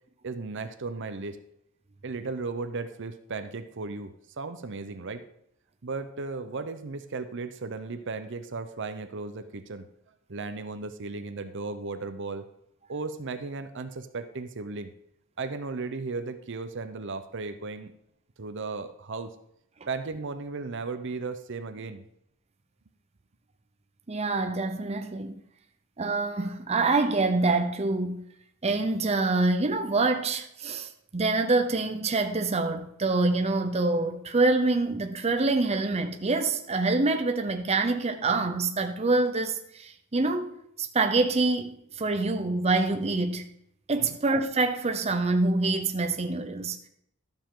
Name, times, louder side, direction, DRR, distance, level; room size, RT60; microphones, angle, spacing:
voice 1, 0.2-1.4 2.0-5.2 5.8-9.9 10.3-12.5 12.9-14.9 15.4-17.9 18.4-19.4 19.9-22.0 44.0-44.2, right 3 dB, 60° right, 0.8 m, -35 dB
voice 2, 24.1-25.3 26.0-28.2 28.6-43.5 43.9-46.8, right 3 dB, 30° right, 0.7 m, -26 dB
13.0 x 7.0 x 3.8 m
head